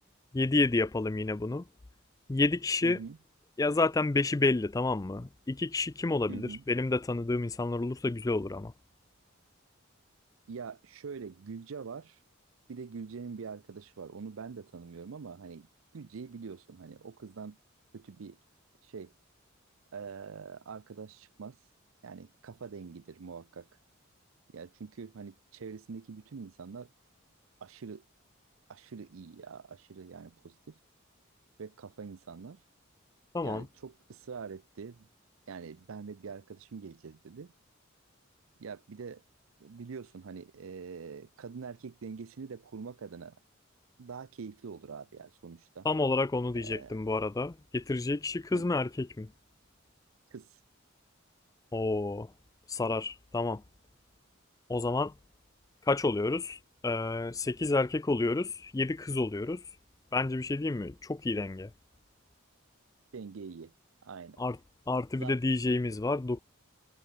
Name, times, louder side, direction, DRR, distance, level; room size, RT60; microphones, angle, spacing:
voice 1, 0.3-1.6 2.3-3.0 3.6-8.7 33.3-33.7 45.8-49.3 51.7-52.3 52.7-53.6 54.7-55.1 55.9-59.6 60.1-61.7 64.4-64.6 64.9-66.4, left 3 dB, 15° left, 0.4 m, -29 dB
voice 2, 2.8-3.2 6.3-6.6 10.5-12.2 12.7-15.7 15.9-17.6 17.9-18.4 18.8-19.1 19.9-21.6 22.0-23.7 24.5-26.9 27.6-28.0 28.7-30.8 31.6-32.6 33.4-35.1 35.5-37.5 38.6-39.2 39.6-43.4 44.0-45.9 46.6-47.0 48.5-48.6 50.3-50.5 63.1-63.7 64.0-64.4 65.2-65.4, right 5 dB, 80° right, 0.5 m, -44 dB
head